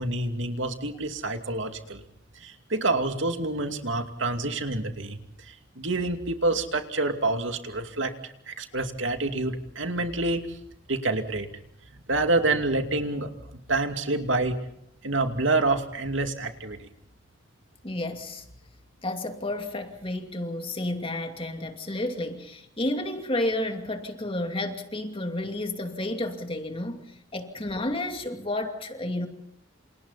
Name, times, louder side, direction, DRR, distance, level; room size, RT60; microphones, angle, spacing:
voice 1, 0.0-2.0 2.4-10.6 10.9-11.5 12.1-13.3 13.7-14.6 15.0-16.9, right 2 dB, 75° right, 2.5 m, -27 dB
voice 2, 17.8-18.4 19.0-29.3, left 1 dB, 30° left, 2.6 m, -31 dB
29.0 x 28.0 x 4.2 m
head